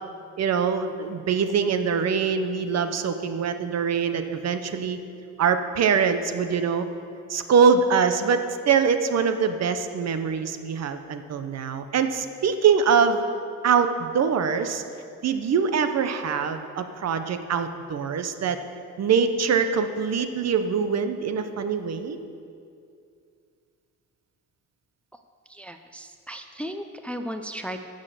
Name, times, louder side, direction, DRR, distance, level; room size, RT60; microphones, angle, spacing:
voice 1, 0.4-5.0 5.4-6.9 7.3-13.2 13.6-14.8 15.2-18.6 19.0-22.2, right 6 dB, 55° right, 9 dB, 0.9 m, -23 dB
voice 2, 25.5-27.9, equal, 5° left, 7 dB, 0.5 m, -35 dB
12.0 x 6.5 x 7.5 m, 2.4 s
cardioid pair, 125°, 31 cm